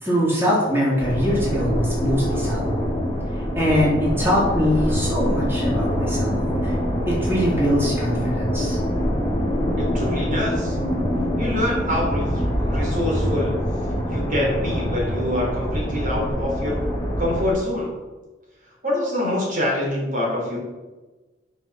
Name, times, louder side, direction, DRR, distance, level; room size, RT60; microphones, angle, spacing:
voice 1, 0.0-2.7 3.3-6.4 6.6-6.7 7.0-8.8, equal, 15° right, -7 dB, 3.3 m, -22 dB
sound 1, 1.0-17.5, equal, 15° left, 2.3 m, -24 dB
voice 2, 9.8-10.8 11.4-13.6 14.1-16.8 17.2-17.9 18.8-20.6, left 1 dB, 45° right, -3 dB, 3.5 m, -25 dB
9.7 x 6.0 x 5.3 m, 1.2 s
head